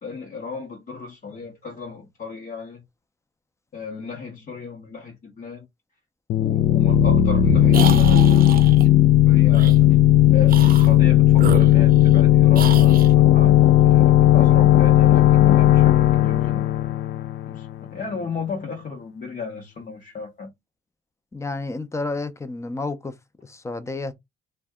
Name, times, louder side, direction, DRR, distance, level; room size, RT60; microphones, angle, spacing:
voice 1, 0.0-2.8 3.7-5.7 6.4-8.6 9.3-10.0 10.3-16.7 17.5-20.5, left 4 dB, 40° left, 0.8 m, -34 dB
sound 1, 6.3-17.9, left 12 dB, 70° left, 0.4 m, -15 dB
sound 2, 7.7-8.9 9.5-9.8 10.4-10.9 11.3-12.2 12.5-13.1, right 7 dB, 50° right, 0.6 m, -29 dB
voice 2, 21.3-23.1 23.4-24.1, left 3 dB, 15° left, 0.5 m, -30 dB
2.6 x 2.2 x 3.5 m
cardioid pair, 90°, 20 cm